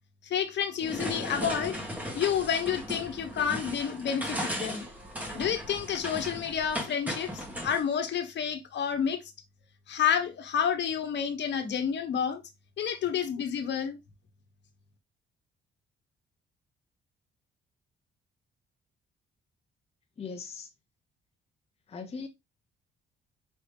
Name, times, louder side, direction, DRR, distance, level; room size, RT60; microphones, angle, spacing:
voice 1, 0.3-1.8 2.1-4.9 5.3-9.2 9.9-12.4 12.8-14.0, left 8 dB, 60° left, 1.2 m, -29 dB
sound 1, 0.8-7.8, equal, 5° right, 1.5 m, -37 dB
voice 2, 20.2-20.7 21.9-22.3, left 5 dB, 30° left, 0.8 m, -39 dB
5.3 x 3.1 x 3.2 m
cardioid pair, 90°, 20 cm